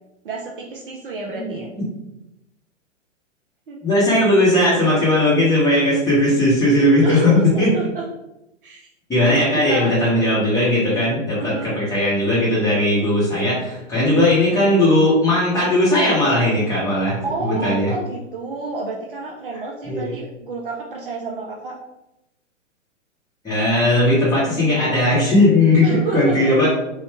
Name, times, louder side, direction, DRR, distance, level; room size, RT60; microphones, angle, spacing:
voice 1, 0.2-1.7 3.7-3.8 7.0-8.1 8.6-8.8 9.5-9.9 11.3-11.8 17.2-21.8 25.8-26.7, right 3 dB, 45° right, -1 dB, 0.5 m, -30 dB
voice 2, 3.8-7.7 9.1-17.9 19.9-20.1 23.4-25.9 26.1-26.7, left 1 dB, 10° left, -8 dB, 1.2 m, -17 dB
2.9 x 2.3 x 3.2 m, 0.90 s
figure-of-eight pair, 115°, 38 cm